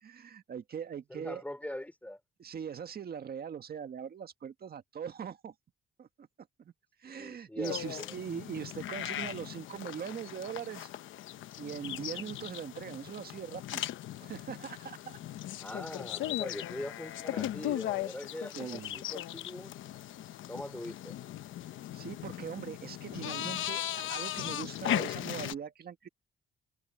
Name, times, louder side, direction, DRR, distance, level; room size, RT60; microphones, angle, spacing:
voice 1, 0.0-1.4 2.4-5.5 6.0-6.3 6.6-6.7 7.0-10.9 11.6-13.8 14.2-15.2 18.5-19.0 21.9-26.1, right 7 dB, 50° right, 1.7 m, -41 dB
voice 2, 1.1-2.2 7.0-8.1 15.6-19.8 20.5-21.2, left 1 dB, 5° left, 3.7 m, -42 dB
sound 1, 7.6-25.5, left 13 dB, 80° left, 1.0 m, -38 dB
cardioid pair, 90°, 20 cm